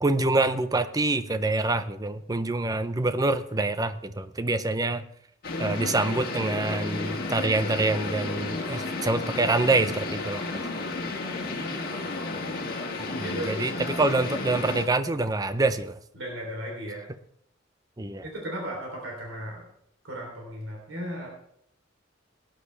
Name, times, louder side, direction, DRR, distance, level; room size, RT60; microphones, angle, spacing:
voice 1, 0.0-5.0 5.6-10.4 13.0-16.0 18.0-18.2, right 2 dB, 20° right, 12 dB, 0.6 m, -26 dB
sound 1, 5.4-14.9, left 3 dB, 50° left, 1.9 m, -32 dB
voice 2, 11.4-12.1 13.2-13.5 16.1-17.1 18.2-19.7 20.0-21.3, right 1 dB, 80° right, -1 dB, 3.3 m, -36 dB
18.0 x 10.0 x 3.4 m, 0.69 s
head